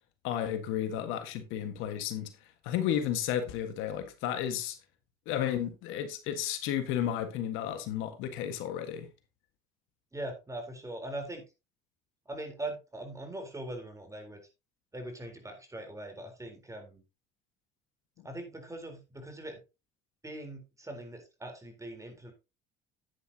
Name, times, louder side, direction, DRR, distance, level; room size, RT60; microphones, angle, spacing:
voice 1, 0.2-2.3 2.6-4.8 5.3-9.1, left 10 dB, 75° left, 1.6 m, -32 dB
voice 2, 10.1-11.4 12.3-14.4 14.9-17.0 18.2-19.6 20.2-22.3, right 1 dB, 15° right, 3.9 m, -41 dB
10.0 x 9.8 x 2.9 m
supercardioid pair, 75°, 21 cm